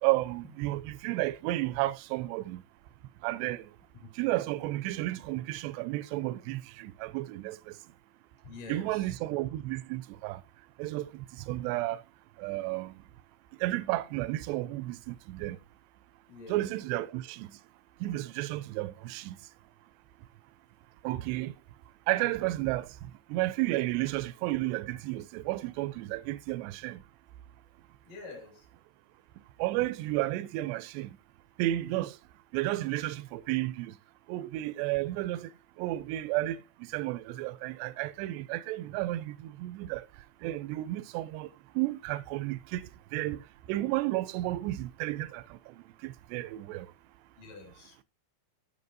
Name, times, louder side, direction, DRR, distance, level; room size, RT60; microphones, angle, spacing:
voice 1, 0.0-2.6 3.2-3.7 4.2-7.8 8.7-10.4 10.8-12.0 12.4-13.0 13.6-15.6 16.5-17.6 18.0-19.4 21.0-21.5 22.1-27.0 29.6-31.2 31.6-32.2 32.5-34.0 34.3-35.5 35.8-40.1 40.4-46.9, right 17 dB, 80° right, 2.5 m, -32 dB
voice 2, 8.4-9.1 16.3-16.7 28.1-28.6 47.4-48.0, left 3 dB, 50° left, 3.8 m, -46 dB
14.5 x 5.9 x 2.6 m
omnidirectional pair, 5.3 m